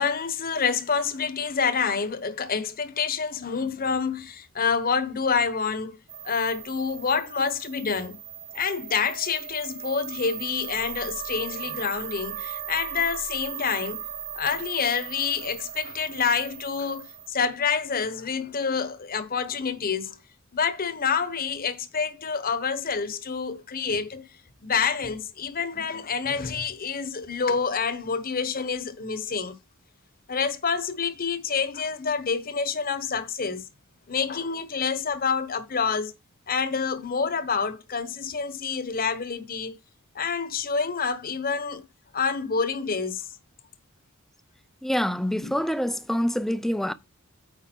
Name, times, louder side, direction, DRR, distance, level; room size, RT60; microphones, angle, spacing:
voice 1, 0.0-6.0 6.2-8.2 8.5-14.0 14.3-20.2 20.5-24.2 24.6-29.5 30.3-33.6 34.1-36.1 36.5-39.7 40.1-41.8 42.1-43.3 45.4-45.6, left 5 dB, 40° left, 1.0 m, -27 dB
sound 1, 6.1-17.3, right 9 dB, 40° right, 1.0 m, -38 dB
voice 2, 44.8-46.9, equal, ahead, 0.4 m, -26 dB
9.0 x 4.7 x 4.5 m
head